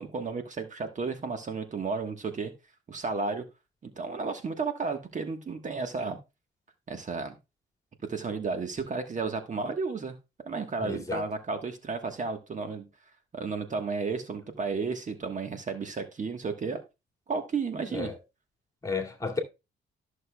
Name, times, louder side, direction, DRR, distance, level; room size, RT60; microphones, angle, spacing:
voice 1, 0.0-2.5 2.9-3.4 3.8-6.2 6.9-7.4 8.1-10.1 10.4-12.9 13.3-16.8 17.3-18.1, right 4 dB, 40° right, 1.3 m, -33 dB
voice 2, 10.8-11.2 17.9-18.1 18.8-19.4, left 4 dB, 15° left, 2.2 m, -32 dB
13.5 x 6.5 x 2.2 m
cardioid pair, 90°, 20 cm